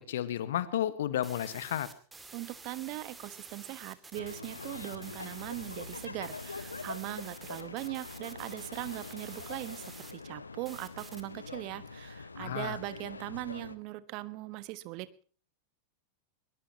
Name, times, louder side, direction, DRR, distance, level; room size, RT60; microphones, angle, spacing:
voice 1, 0.0-1.9 12.4-12.8, left 11 dB, 60° left, 15 dB, 1.5 m, -32 dB
sound 1, 1.2-10.1 10.7-11.2, right 4 dB, 10° right, 2.5 m, -50 dB
voice 2, 2.3-9.8 10.1-15.2, right 19 dB, 40° right, 16 dB, 1.3 m, -40 dB
sound 2, 4.1-13.8, left 4 dB, 80° left, 1.0 m, -44 dB
22.0 x 21.5 x 3.0 m, 0.41 s
figure-of-eight pair, 90°, 0 cm